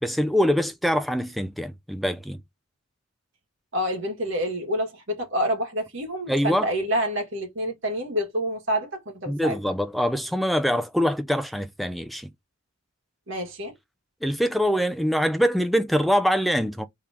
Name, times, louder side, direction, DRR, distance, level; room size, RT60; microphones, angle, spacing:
voice 1, 0.0-2.4 6.3-6.7 9.3-12.3 14.2-16.9, equal, ahead, 0.4 m, -24 dB
voice 2, 3.7-9.6 13.3-13.7, equal, 60° right, 1.8 m, -28 dB
3.5 x 3.0 x 4.7 m
head